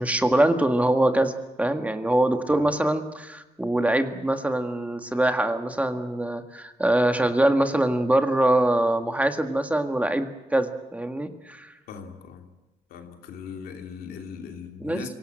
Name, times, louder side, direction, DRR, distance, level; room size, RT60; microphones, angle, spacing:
voice 1, 0.0-11.7 14.8-15.0, right 1 dB, 10° right, 7 dB, 1.7 m, -23 dB
voice 2, 11.9-12.5 12.9-15.1, left 6 dB, 85° left, 4 dB, 3.0 m, -39 dB
25.5 x 17.5 x 9.0 m, 1.0 s
cardioid pair, 110°, 15 cm